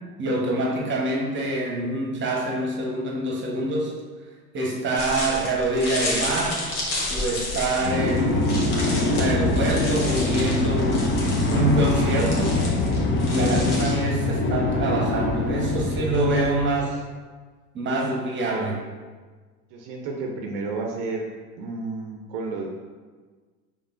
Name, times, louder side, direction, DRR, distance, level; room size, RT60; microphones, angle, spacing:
voice 1, 0.2-4.0 4.5-6.6 7.1-12.6 13.2-17.0 17.7-18.8, right 1 dB, 25° right, -1 dB, 1.1 m, -25 dB
sound 1, 5.0-13.9, left 2 dB, 60° left, 1.4 m, -32 dB
sound 2, 7.8-16.8, left 2 dB, 25° left, 0.6 m, -24 dB
voice 2, 19.7-21.2 21.6-22.7, right 3 dB, 50° right, 1 dB, 0.7 m, -31 dB
5.2 x 3.3 x 2.5 m, 1.4 s
hypercardioid pair, 85°, 47 cm